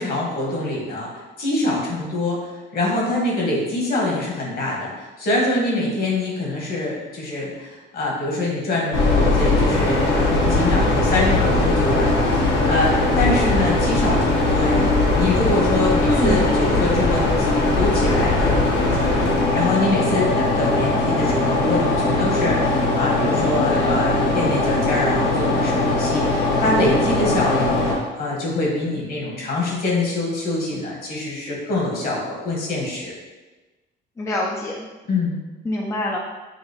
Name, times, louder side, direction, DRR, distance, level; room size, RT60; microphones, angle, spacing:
voice 1, 0.0-14.9 15.2-17.3 17.6-27.7 28.2-33.1 35.1-35.4, left 2 dB, 50° left, -3 dB, 1.3 m, -24 dB
sound 1, 8.9-27.9, left 2 dB, 75° left, 1.1 m, -20 dB
voice 2, 16.0-16.9 27.3-27.4 34.2-34.7 35.7-36.2, left 1 dB, 15° left, -2 dB, 0.4 m, -25 dB
5.7 x 2.6 x 3.0 m, 1.2 s
cardioid pair, 140°, 19 cm